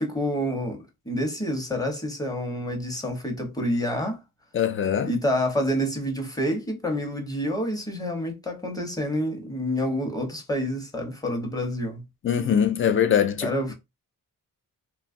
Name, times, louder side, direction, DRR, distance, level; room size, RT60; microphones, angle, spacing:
voice 1, 0.0-4.2 5.0-12.0 13.4-13.7, equal, 10° left, 0.9 m, -28 dB
voice 2, 4.5-5.1 12.2-13.5, left 8 dB, 35° left, 0.4 m, -22 dB
3.0 x 2.3 x 2.5 m
wide cardioid pair, 115°, 35 cm